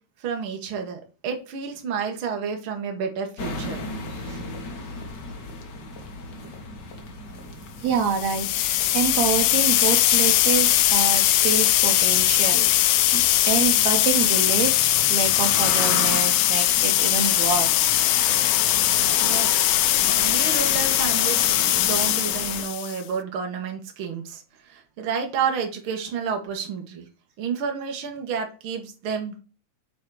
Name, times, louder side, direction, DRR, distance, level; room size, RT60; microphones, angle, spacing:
voice 1, 0.2-3.8 19.2-19.7 20.0-27.1 27.4-29.4, right 6 dB, 50° right, 3 dB, 2.0 m, -30 dB
sound 1, 3.4-22.6, left 3 dB, 50° left, 1.5 m, -35 dB
voice 2, 7.8-18.0, right 6 dB, 75° right, 5 dB, 2.2 m, -27 dB
sound 2, 8.0-23.0, left 14 dB, 80° left, 1.5 m, -20 dB
8.4 x 4.1 x 4.8 m, 0.35 s
omnidirectional pair, 3.3 m